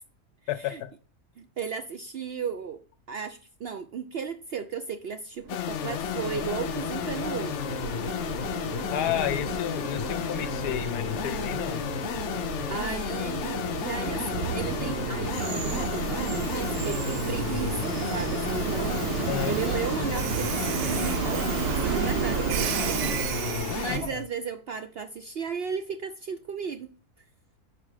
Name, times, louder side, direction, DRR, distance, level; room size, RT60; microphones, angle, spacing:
voice 1, 0.5-0.9 8.9-11.8 19.3-19.6 23.9-24.2, left 12 dB, 90° left, 1.1 m, -31 dB
voice 2, 1.4-2.8 3.1-7.6 12.7-19.0 19.5-26.9, right 6 dB, 70° right, 0.5 m, -35 dB
No Juice, 5.5-24.0, left 11 dB, 65° left, 0.7 m, -32 dB
Train, 5.5-24.2, right 10 dB, 85° right, 1.1 m, -32 dB
5.8 x 4.7 x 6.4 m
omnidirectional pair, 1.6 m